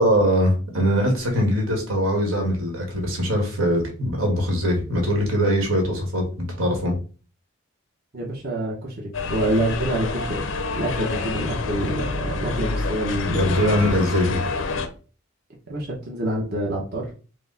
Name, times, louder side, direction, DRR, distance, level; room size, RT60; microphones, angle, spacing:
voice 1, 0.0-6.2 6.6-6.9 13.3-14.4, equal, 80° right, 1 dB, 1.5 m, -21 dB
voice 2, 8.1-10.5 10.7-13.7 15.7-17.0, right 1 dB, 50° right, -3 dB, 0.9 m, -27 dB
sound 1, 9.1-14.9, left 3 dB, 75° left, 0.6 m, -27 dB
4.7 x 2.2 x 3.9 m, 0.37 s
head